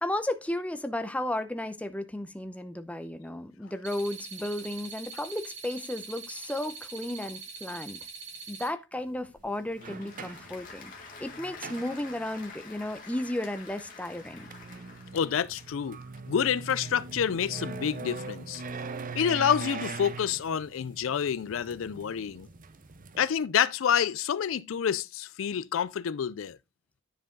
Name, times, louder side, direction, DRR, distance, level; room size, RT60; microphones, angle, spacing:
voice 1, 0.0-8.1 8.5-10.9 11.2-14.5, left 1 dB, 5° left, 0.7 m, -34 dB
sound 1, 3.8-8.7, right 4 dB, 65° right, 2.4 m, -43 dB
sound 2, 9.0-9.1 9.7-12.5 13.9-23.2, right 4 dB, 45° right, 0.7 m, -41 dB
Applause / Crowd, 9.2-15.6, left 4 dB, 45° left, 1.9 m, -48 dB
voice 2, 15.1-16.0 16.3-18.6 19.2-22.5 23.2-26.6, left 8 dB, 80° left, 0.4 m, -28 dB
10.0 x 4.6 x 3.8 m
head